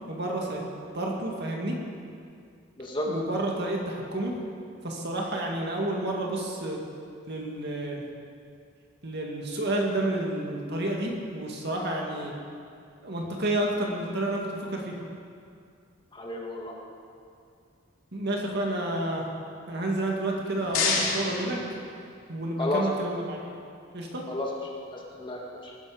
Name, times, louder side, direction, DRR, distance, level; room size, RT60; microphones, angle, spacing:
voice 1, 0.1-0.6 0.9-1.7 3.0-4.4 4.8-6.8 7.3-8.0 9.0-12.3 13.0-14.9 18.1-19.2 19.7-21.6 22.3-23.5 23.9-24.2, right 1 dB, 50° right, -1 dB, 2.1 m, -30 dB
voice 2, 16.1-16.8 22.6-23.1 24.3-24.5 24.9-25.7, left 1 dB, 25° left, -2 dB, 1.8 m, -32 dB
sound 1, 20.2-22.4, left 4 dB, 85° left, 2.4 m, -30 dB
19.5 x 11.5 x 5.1 m, 2.3 s
head